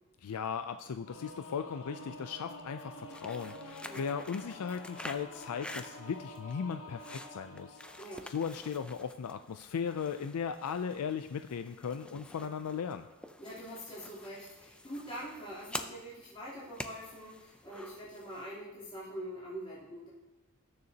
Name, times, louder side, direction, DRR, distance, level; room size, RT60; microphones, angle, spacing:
voice 1, 0.2-13.1, left 6 dB, 90° left, 9 dB, 0.4 m, -37 dB
Singing / Musical instrument, 1.1-8.8, left 1 dB, 65° left, 1.4 m, -48 dB
sound 1, 3.0-18.6, left 1 dB, 5° left, 0.4 m, -48 dB
voice 2, 13.4-20.1, equal, 25° left, -11 dB, 3.3 m, -44 dB
19.0 x 6.7 x 2.8 m, 1.1 s
head